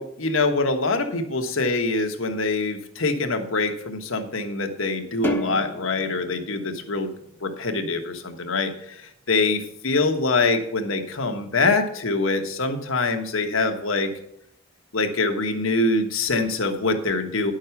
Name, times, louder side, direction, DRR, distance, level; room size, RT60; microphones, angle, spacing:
voice 1, 0.0-7.1 7.4-14.1 14.9-17.5, left 3 dB, 80° left, 5 dB, 1.4 m, -24 dB
sound 1, 5.2-7.8, left 1 dB, 10° left, 0.9 m, -32 dB
10.5 x 6.4 x 5.9 m, 0.72 s
head